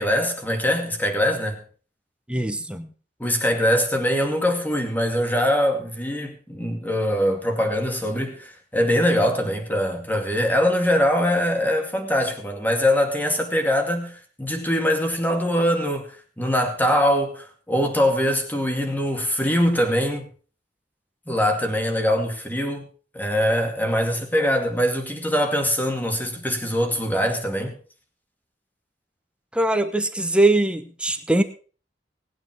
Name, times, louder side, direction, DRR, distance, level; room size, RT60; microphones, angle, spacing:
voice 1, 0.0-1.6 3.2-20.3 21.3-22.9 23.1-27.7, equal, 10° left, 2.3 m, -23 dB
voice 2, 2.3-2.9 21.3-21.4 29.5-31.4, right 2 dB, 5° right, 1.0 m, -22 dB
19.0 x 9.0 x 4.5 m
head